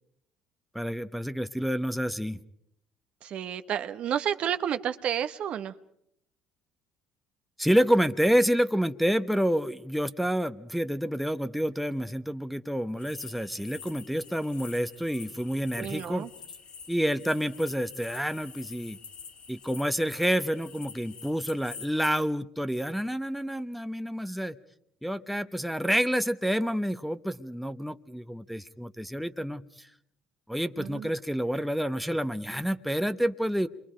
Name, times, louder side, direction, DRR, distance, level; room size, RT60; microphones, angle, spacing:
voice 1, 0.7-2.4 7.6-16.3 16.9-19.0 19.5-24.6 25.0-29.9 30.5-33.7, equal, ahead, 9 dB, 1.1 m, -28 dB
voice 2, 3.2-5.7 15.7-16.3 30.8-31.1, right 9 dB, 60° right, 10 dB, 1.0 m, -31 dB
sound 1, 13.0-22.1, left 6 dB, 60° left, 3.6 m, -47 dB
28.5 x 23.5 x 5.1 m, 0.73 s
supercardioid pair, 70°, 2 cm